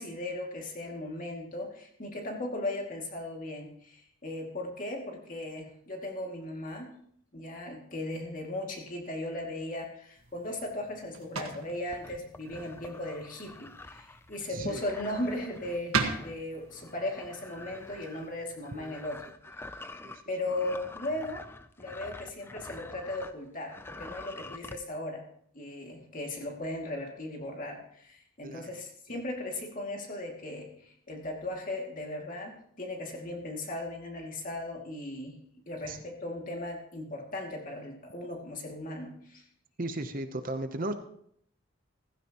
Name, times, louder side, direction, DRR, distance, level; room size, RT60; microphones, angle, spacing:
voice 1, 0.0-6.9 7.3-19.3 20.3-21.5 21.8-25.2 25.5-35.4 35.7-39.4, left 1 dB, 40° left, 1 dB, 2.4 m, -37 dB
sound 1, 10.1-19.3, right 5 dB, 90° right, 1.6 m, -40 dB
sound 2, 11.9-23.4 23.7-24.8, left 2 dB, 10° left, 0.4 m, -47 dB
voice 2, 14.5-14.8 18.7-18.9 20.0-20.2 28.4-28.8 35.8-36.0 39.8-40.9, right 1 dB, 40° right, 8 dB, 0.8 m, -36 dB
16.0 x 15.0 x 3.0 m, 0.68 s
head